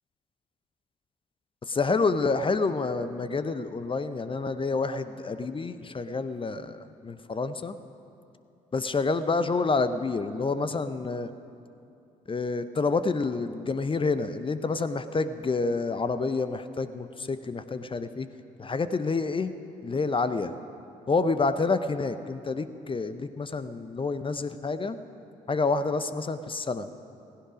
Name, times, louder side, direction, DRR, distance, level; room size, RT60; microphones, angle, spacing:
voice 1, 1.7-7.8 8.7-11.3 12.3-18.3 18.6-19.5 19.8-20.5 21.1-25.0 25.5-26.9, left 4 dB, 25° left, 11 dB, 0.8 m, -28 dB
17.0 x 16.0 x 5.1 m, 2.7 s
figure-of-eight pair, 45°, 21 cm